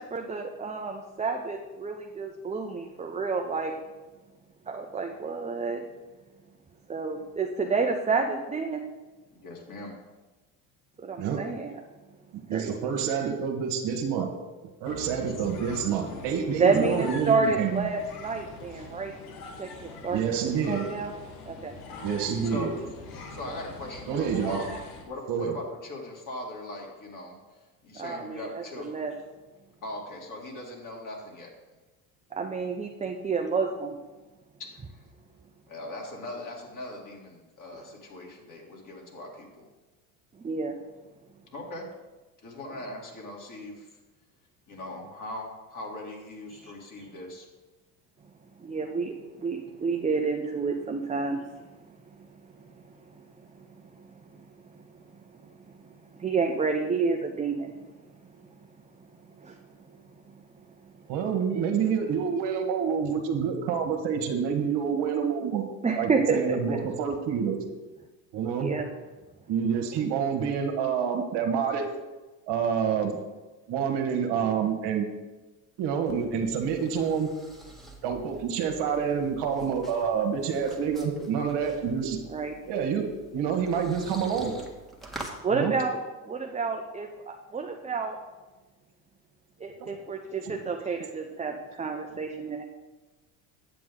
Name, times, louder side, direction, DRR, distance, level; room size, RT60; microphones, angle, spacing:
voice 1, 0.0-3.7 4.7-5.8 6.9-8.8 11.0-11.8 12.5-12.7 16.6-19.2 19.6-21.1 21.5-21.7 28.0-29.1 32.3-34.0 37.7-37.8 40.4-40.8 42.6-42.8 46.5-46.7 48.6-51.5 52.2-52.3 54.0-54.1 54.3-54.4 55.4-55.5 56.1-57.8 59.4-59.6 65.8-66.8 68.6-68.8 82.3-82.6 85.4-86.0 86.3-88.2 89.6-92.6, right 4 dB, 15° right, 2 dB, 0.7 m, -29 dB
voice 2, 9.4-9.9 22.5-22.7 23.3-24.8 25.1-27.4 27.8-28.9 29.8-31.5 34.6-34.7 35.7-39.6 41.5-41.9 42.4-43.9 44.7-47.5, left 1 dB, 40° left, -1 dB, 2.7 m, -40 dB
voice 3, 12.3-14.3 14.8-17.9 20.1-20.8 22.0-22.7 24.1-24.7 25.3-25.6 61.1-65.6 66.0-67.6 68.3-68.8 69.5-71.9 72.5-73.2 73.7-75.1 75.8-77.3 78.0-82.2 82.7-83.1 83.3-84.6 85.5-85.7 89.8-90.0 90.4-90.5, right 7 dB, 60° right, 4 dB, 1.5 m, -28 dB
sound 1, 14.8-25.0, left 3 dB, 80° left, 1.7 m, -42 dB
sound 2, 75.8-85.4, right 2 dB, ahead, 1.6 m, -47 dB
8.8 x 7.7 x 3.8 m, 1.2 s
supercardioid pair, 95°, 47 cm